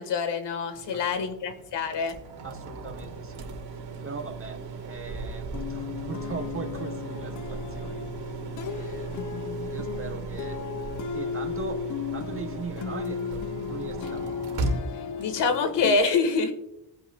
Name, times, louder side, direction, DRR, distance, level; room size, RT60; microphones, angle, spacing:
voice 1, 0.0-2.1 15.2-16.5, left 4 dB, 90° left, 9 dB, 1.7 m, -26 dB
sound 1, 0.7-15.9, right 3 dB, 65° right, 2.3 m, -37 dB
voice 2, 0.9-1.3 2.4-3.5 4.0-8.1 8.7-9.2 9.6-10.6 11.1-11.9 12.1-14.3, right 4 dB, 30° right, 4 dB, 1.5 m, -39 dB
sound 2, 5.5-16.0, left 8 dB, 45° left, 0.6 m, -35 dB
18.5 x 9.4 x 2.3 m, 0.81 s
cardioid pair, 110°, 41 cm